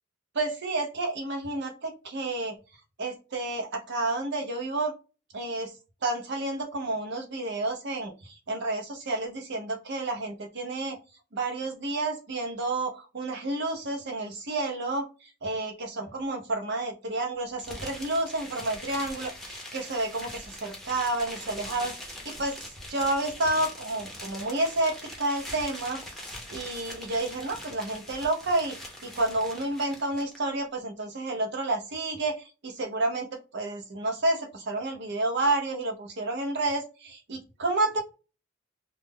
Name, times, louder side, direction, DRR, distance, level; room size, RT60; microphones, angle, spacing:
voice 1, 0.3-2.6 3.0-4.9 5.3-5.7 6.0-11.0 11.3-15.1 15.4-22.6 22.9-26.0 26.5-33.3 33.5-38.0, right 2 dB, 55° right, 3 dB, 0.7 m, -30 dB
sound 1, 17.6-30.4, left 1 dB, ahead, 0.6 m, -42 dB
2.3 x 2.0 x 3.5 m, 0.32 s
head